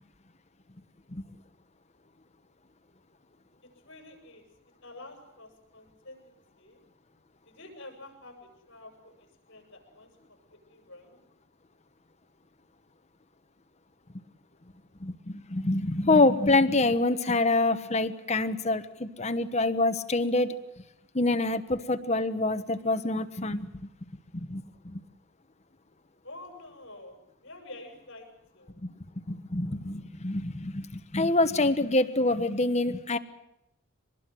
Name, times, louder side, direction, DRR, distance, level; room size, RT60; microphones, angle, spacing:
voice 1, 3.6-4.5 4.8-6.8 7.4-11.2 26.2-28.7, left 2 dB, 60° left, 3 dB, 7.2 m, -49 dB
voice 2, 15.0-20.5 21.1-23.7 24.3-25.0 29.3-33.2, left 2 dB, 30° left, 9 dB, 1.1 m, -26 dB
24.5 x 20.5 x 7.7 m, 0.89 s
head